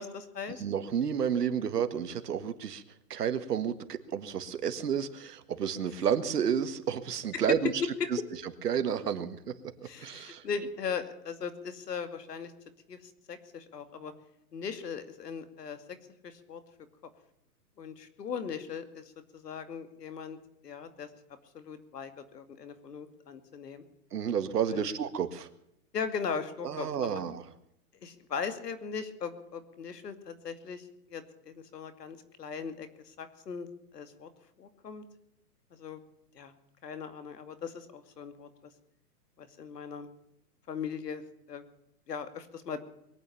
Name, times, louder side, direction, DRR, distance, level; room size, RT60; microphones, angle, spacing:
voice 1, 0.0-0.6 7.3-7.4 9.8-12.5 12.9-14.1 14.5-15.8 16.2-16.6 17.8-20.4 20.6-21.1 21.5-23.8 24.7-24.9 25.9-27.2 28.0-33.7 33.9-34.3 34.6-35.0 35.7-36.0 36.3-36.5 36.8-38.5 39.4-40.1 40.7-41.2 41.5-41.6 42.1-42.8, left 6 dB, 85° left, 10 dB, 2.6 m, -39 dB
voice 2, 0.6-2.8 3.1-7.7 8.6-9.4 10.0-10.4 24.1-25.5 26.6-27.4, right 8 dB, 80° right, 10 dB, 1.9 m, -31 dB
22.5 x 9.3 x 6.9 m, 0.78 s
hypercardioid pair, 170°, 47 cm